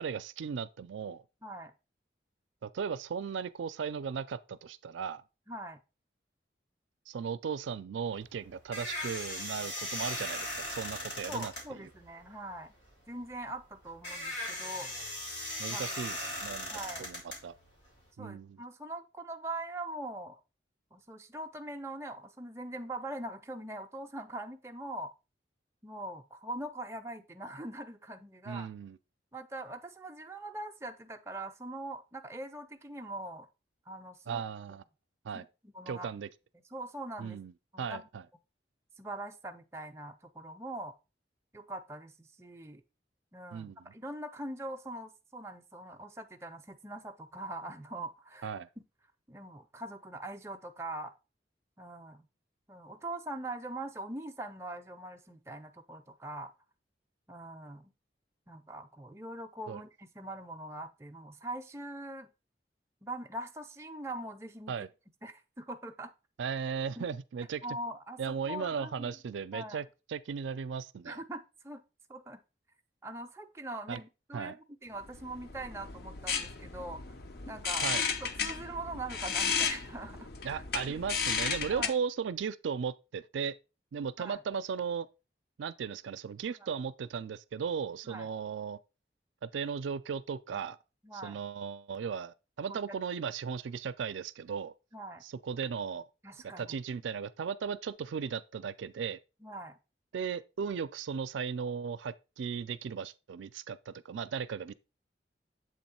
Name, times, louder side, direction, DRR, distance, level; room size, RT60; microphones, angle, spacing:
voice 1, 0.0-1.2 2.6-5.2 7.1-11.5 15.6-16.7 17.0-17.5 18.2-18.6 28.5-29.0 34.3-34.8 35.2-35.4 35.9-36.3 37.2-37.5 37.8-38.2 43.5-43.9 48.4-48.7 59.7-59.8 64.7-64.9 66.4-67.6 68.2-71.2 73.9-74.0 74.3-74.5 77.8-78.0 80.4-83.6 83.9-85.1 85.6-88.8 89.4-90.8 91.1-94.7 95.2-96.1 96.6-99.2 100.1-104.7, right 6 dB, 85° right, 0.4 m, -36 dB
voice 2, 1.4-1.7 5.5-5.8 11.2-12.7 13.1-14.9 15.7-15.8 16.7-17.1 18.2-20.4 20.9-25.1 25.8-28.7 29.3-33.5 33.9-34.4 35.3-36.1 36.7-37.4 37.7-38.1 39.0-40.9 41.5-42.8 43.3-48.5 49.3-51.1 51.8-52.3 52.7-56.5 57.3-57.9 58.5-62.3 63.0-64.7 65.2-66.1 67.0-67.1 67.6-69.1 69.5-69.8 71.1-71.8 72.1-72.4 73.0-77.0 77.5-77.9 78.2-80.6 80.9-81.0 81.7-81.9 84.2-84.4 88.0-88.3 91.0-91.4 92.7-93.0 94.9-95.2 96.2-96.8 99.4-99.8, right 1 dB, 15° right, 0.5 m, -42 dB
sound 1, 8.1-18.1, left 1 dB, 80° left, 2.4 m, -39 dB
sound 2, 75.1-81.9, left 6 dB, 55° left, 0.6 m, -34 dB
7.6 x 3.1 x 4.2 m
head